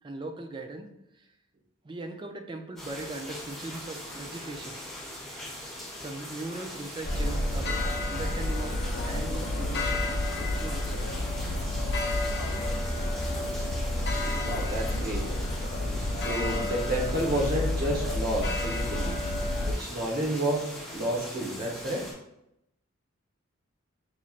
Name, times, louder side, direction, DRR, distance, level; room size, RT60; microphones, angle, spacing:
voice 1, 0.0-0.9 1.1-1.3 1.8-4.9 6.0-7.8 8.1-8.8 9.0-11.1, right 2 dB, 20° right, 4 dB, 0.4 m, -39 dB
sound 1, 2.8-22.1, left 1 dB, ahead, 1.4 m, -41 dB
sound 2, 7.0-19.7, left 1 dB, 50° left, 0.5 m, -30 dB
voice 2, 14.4-15.2 15.8-19.2 19.6-22.0, right 1 dB, 45° right, -2 dB, 1.1 m, -30 dB
5.3 x 3.0 x 2.4 m, 0.83 s
head